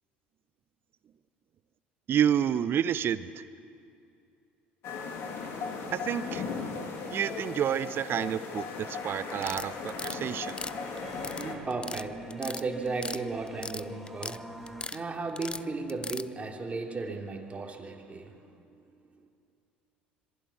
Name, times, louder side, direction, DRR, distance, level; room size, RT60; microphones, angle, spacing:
voice 1, 2.1-3.4 5.9-6.4 7.1-10.5, right 9 dB, 45° right, 15 dB, 0.9 m, -29 dB
sound 1, 4.8-11.5, left 4 dB, 55° left, 3.5 m, -37 dB
sound 2, 7.8-14.9, right 1 dB, ahead, 2.2 m, -46 dB
sound 3, 9.3-10.2 10.5-11.4 11.7-12.0 12.3-13.2 13.5-14.4 14.7-15.0 15.4-16.2, left 3 dB, 15° left, 0.6 m, -37 dB
voice 2, 10.8-18.5, right 3 dB, 25° right, 2 dB, 3.1 m, -36 dB
26.5 x 23.0 x 6.0 m, 2.6 s
hypercardioid pair, 70°, 5 cm